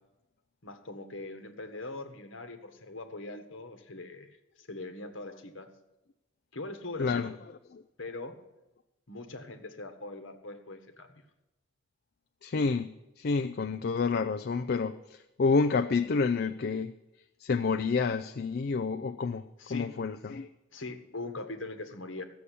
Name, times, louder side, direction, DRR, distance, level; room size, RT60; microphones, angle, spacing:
voice 1, 0.6-4.3 4.6-5.7 6.5-7.2 8.0-8.4 9.1-11.2 19.6-19.9 20.7-22.3, left 2 dB, 65° left, 7 dB, 1.5 m, -41 dB
voice 2, 7.0-7.3 7.7-7.8 12.4-16.9 17.4-19.4 19.7-20.5, left 4 dB, 50° left, 9 dB, 0.4 m, -29 dB
14.5 x 7.0 x 8.4 m, 0.98 s
head